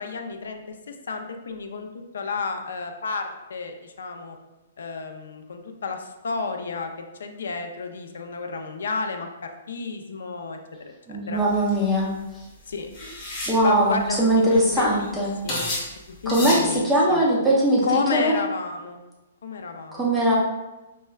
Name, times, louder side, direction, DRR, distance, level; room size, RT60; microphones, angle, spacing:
voice 1, 0.0-1.9 2.1-4.4 4.8-6.9 7.2-10.9 11.3-11.4 12.7-12.9 13.6-15.1 15.4-15.7 16.2-17.3 17.8-19.0 19.4-20.1, left 4 dB, 85° left, 5 dB, 0.4 m, -31 dB
voice 2, 11.1-12.1 13.5-15.3 16.3-18.3 20.0-20.4, right 1 dB, ahead, -6 dB, 0.4 m, -21 dB
sound 1, 11.5-11.7 12.9-13.6 14.2-14.3 14.5-14.8 15.5-15.9 16.3-16.7, left 1 dB, 20° left, 0.9 m, -29 dB
4.4 x 2.1 x 2.3 m, 1.1 s
hypercardioid pair, 180°, 0 cm